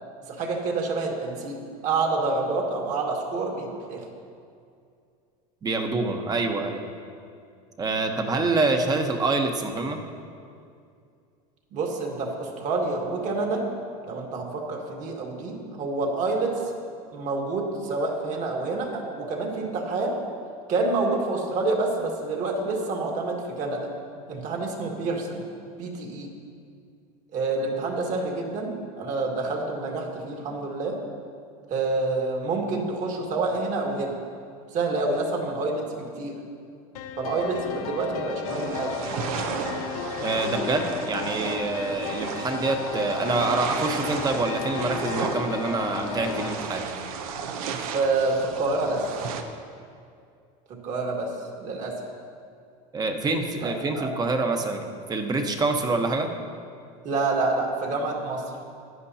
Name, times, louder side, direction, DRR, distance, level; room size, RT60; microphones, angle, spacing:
voice 1, 0.3-4.1 11.7-13.6 14.0-16.6 17.1-20.2 20.7-23.9 24.3-25.5 25.8-26.3 27.3-31.0 31.7-34.2 34.7-36.4 37.2-39.0 47.9-49.0 50.7-51.3 51.6-52.0 53.6-54.1 57.0-58.4, right 3 dB, 45° right, 0 dB, 2.0 m, -28 dB
voice 2, 5.6-6.9 7.8-10.0 40.2-46.9 52.9-56.3, right 3 dB, 20° right, 5 dB, 1.0 m, -26 dB
sound 1, 36.9-46.5, left 7 dB, 90° left, 0.9 m, -34 dB
sound 2, 38.5-49.4, right 6 dB, 85° right, 0.9 m, -34 dB
16.0 x 10.5 x 2.8 m, 2.4 s
supercardioid pair, 125°, 18 cm